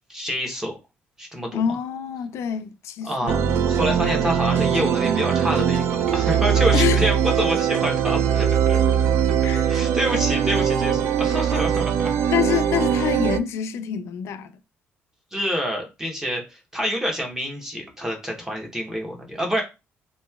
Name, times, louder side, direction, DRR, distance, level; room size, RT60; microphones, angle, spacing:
voice 1, 0.1-0.7 1.2-1.8 3.0-3.4 3.7-8.8 9.6-12.1 15.3-19.6, equal, 10° right, 0.8 m, -27 dB
voice 2, 1.5-3.3 6.5-7.0 8.7-9.0 9.4-9.7 12.3-14.6, left 9 dB, 70° left, 0.4 m, -26 dB
sound 1, 3.3-13.4, right 8 dB, 60° right, 0.3 m, -21 dB
2.9 x 2.7 x 2.3 m
cardioid pair, 130°, 5 cm